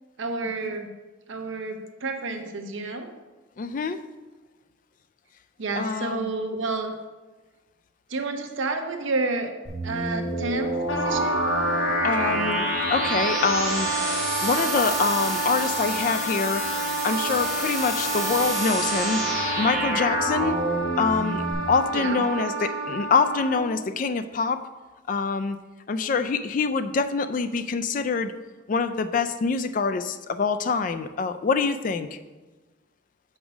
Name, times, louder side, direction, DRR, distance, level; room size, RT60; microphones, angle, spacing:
voice 1, 0.2-0.9 1.3-3.1 5.6-6.9 8.1-9.5 9.8-11.4 21.9-22.4, right 3 dB, 70° right, 5 dB, 0.8 m, -30 dB
voice 2, 3.6-4.0 5.8-6.3 12.0-13.9 14.4-16.6 17.0-19.2 19.6-20.6 21.0-24.6 25.1-25.6 25.9-28.3 28.7-32.1, left 4 dB, 40° left, 11 dB, 0.3 m, -25 dB
sound 1, 9.6-21.5, right 1 dB, ahead, 2.4 m, -29 dB
Wind instrument woodwind instrument, 10.9-23.8, right 2 dB, 80° left, 0.9 m, -29 dB
5.4 x 4.7 x 6.1 m, 1.2 s
head